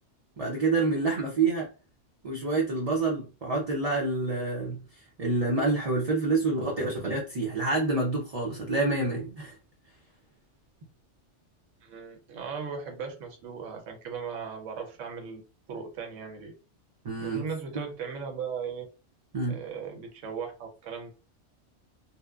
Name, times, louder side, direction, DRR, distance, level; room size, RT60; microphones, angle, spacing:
voice 1, 0.4-1.7 2.2-4.8 5.2-9.5 17.0-17.4 19.3-19.6, right 3 dB, 45° right, 0.5 m, -27 dB
voice 2, 11.8-15.4 15.7-16.5 17.2-18.9 19.5-21.1, right 6 dB, 90° right, 1.0 m, -37 dB
2.8 x 2.1 x 2.3 m
omnidirectional pair, 1.2 m